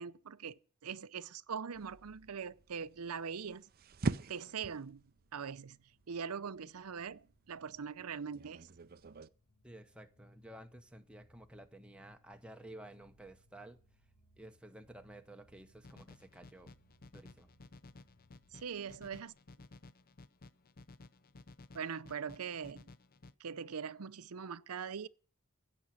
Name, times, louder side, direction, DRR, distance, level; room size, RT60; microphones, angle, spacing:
voice 1, 0.0-3.7 4.3-5.0 5.3-5.8 6.1-8.7 18.5-19.3 21.7-22.9 23.4-25.1, right 6 dB, 85° right, 0.6 m, -42 dB
sound 1, 1.7-9.3, right 3 dB, 45° right, 0.6 m, -43 dB
sound 2, 3.5-19.4, equal, 80° left, 3.5 m, -71 dB
voice 2, 9.6-13.8 14.4-16.7 17.1-17.5, right 1 dB, 5° right, 1.0 m, -53 dB
sound 3, 15.8-23.3, left 2 dB, 40° left, 0.6 m, -56 dB
16.0 x 6.2 x 9.2 m
head